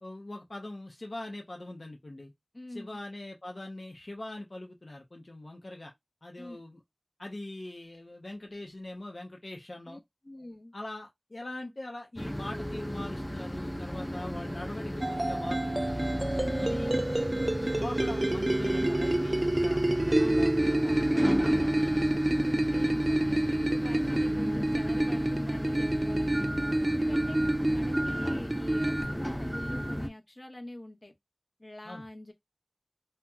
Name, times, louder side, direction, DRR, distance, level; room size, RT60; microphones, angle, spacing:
voice 1, 0.0-2.3 2.7-5.9 6.2-6.8 7.2-10.0 10.7-16.2 16.6-17.1 17.6-20.8 27.1-27.3 31.8-32.0, left 1 dB, 85° left, 0.7 m, -42 dB
voice 2, 2.5-3.0 6.4-6.6 9.9-10.7 16.5-16.9 20.2-26.4 26.9-27.4 27.7-31.1 31.6-32.3, left 1 dB, 50° left, 1.0 m, -45 dB
sound 1, 12.2-30.1, equal, 5° left, 0.5 m, -34 dB
sound 2, 15.0-29.0, right 1 dB, 45° right, 0.4 m, -28 dB
2.8 x 2.1 x 3.5 m
wide cardioid pair, 45°, 0 cm